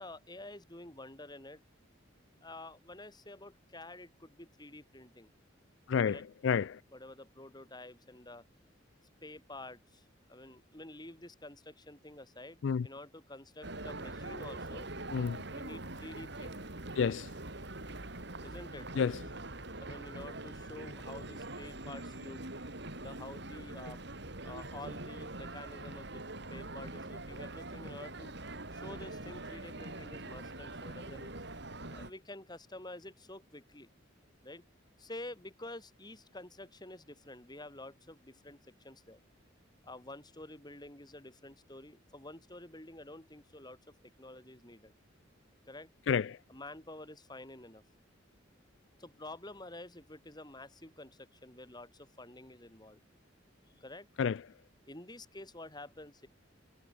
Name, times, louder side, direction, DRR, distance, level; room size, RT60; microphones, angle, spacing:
voice 1, 0.0-1.6 2.4-5.3 6.0-6.3 6.9-8.5 9.2-14.9 15.5-16.6 18.4-18.9 19.8-22.4 23.0-24.0 24.4-26.2 26.5-28.4 28.7-31.3 31.9-33.9 34.4-34.6 35.0-39.2 39.8-43.8 44.2-44.9 45.7-45.9 46.5-47.8 49.0-53.0 53.8-54.1 54.9-56.3, left 2 dB, 20° left, 7.3 m, -49 dB
voice 2, 6.4-6.8 12.6-12.9 15.1-15.4 17.0-17.3 19.0-19.1 46.1-46.4 54.2-54.4, left 6 dB, 65° left, 0.4 m, -29 dB
sound 1, 13.6-32.1, right 2 dB, 60° right, 4.5 m, -44 dB
head